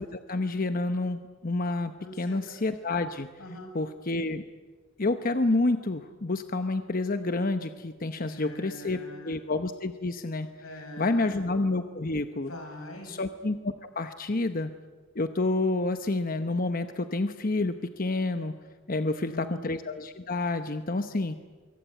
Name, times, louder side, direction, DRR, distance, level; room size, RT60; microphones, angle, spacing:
voice 1, 0.0-3.3 3.7-4.4 5.0-10.5 11.0-12.5 13.0-14.7 15.1-18.5 18.9-21.4, left 2 dB, 45° left, 9 dB, 1.0 m, -29 dB
voice 2, 2.0-2.5 3.4-3.7 8.1-9.4 10.6-11.4 12.3-13.1 18.9-19.7, equal, 90° left, 4 dB, 7.2 m, -43 dB
24.5 x 24.0 x 9.1 m, 1.4 s
head